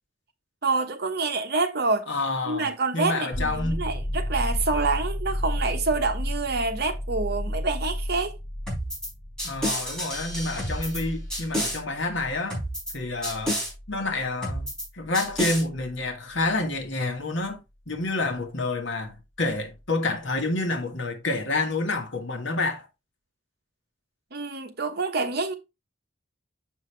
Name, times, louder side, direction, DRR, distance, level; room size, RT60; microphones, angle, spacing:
voice 1, 0.6-2.1 2.4-8.3 24.3-25.5, right 3 dB, 55° right, 1.1 m, -27 dB
voice 2, 2.1-3.9 9.4-12.6 12.9-17.6 17.9-22.9, left 2 dB, 70° left, 1.6 m, -28 dB
sound 1, 3.3-16.8 19.5-19.6, equal, 25° left, 0.8 m, -33 dB
sound 2, 8.7-9.1 9.4-11.0 11.3-11.8 12.5-12.9 13.2-13.7 14.4-14.9 15.1-15.6, equal, 5° left, 3.9 m, -29 dB
6.9 x 5.6 x 3.3 m
head